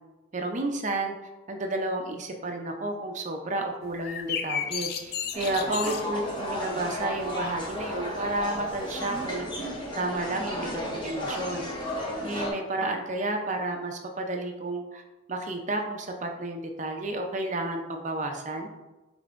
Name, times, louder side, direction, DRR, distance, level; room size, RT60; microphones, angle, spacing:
voice 1, 0.3-1.2 1.5-9.7 10.0-11.7 12.2-15.0 15.3-18.7, right 2 dB, 35° right, 3 dB, 0.5 m, -31 dB
sound 1, 3.8-9.2, left 8 dB, 50° left, 0.3 m, -36 dB
sound 2, 5.3-12.5, equal, 20° left, 0.7 m, -34 dB
5.3 x 3.3 x 2.5 m, 1.1 s
head